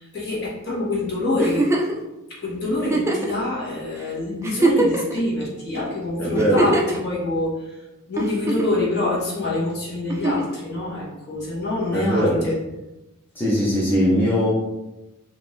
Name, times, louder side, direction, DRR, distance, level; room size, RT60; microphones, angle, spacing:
voice 1, 0.0-1.7 2.4-7.8 8.1-12.6, left 2 dB, 50° left, -6 dB, 1.2 m, -26 dB
Giggle, 1.4-2.0 2.8-3.3 4.0-4.1 4.4-5.2 6.4-7.0 8.2-8.8 10.1-10.6 12.0-12.1, right 2 dB, 10° right, 0.3 m, -22 dB
voice 2, 6.2-6.7 11.9-12.5 13.3-14.5, equal, 10° left, -8 dB, 0.7 m, -20 dB
3.4 x 2.6 x 3.1 m, 0.98 s
head